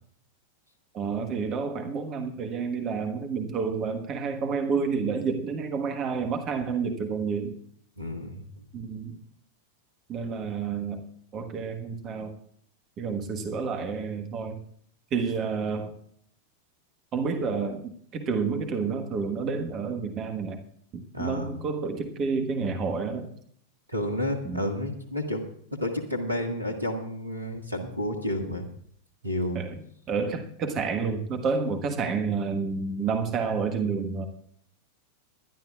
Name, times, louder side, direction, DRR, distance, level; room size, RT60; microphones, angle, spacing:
voice 1, 0.9-7.5 8.7-9.1 10.1-11.0 11.3-12.3 13.0-14.6 15.1-15.9 17.1-20.6 20.9-23.3 24.4-24.6 29.5-34.3, right 5 dB, 30° right, 7 dB, 1.4 m, -29 dB
voice 2, 8.0-8.4 21.1-21.5 23.9-28.6 29.2-29.6, left 1 dB, 85° right, 5 dB, 1.7 m, -31 dB
22.5 x 11.5 x 2.4 m, 0.63 s
figure-of-eight pair, 90°, 0 cm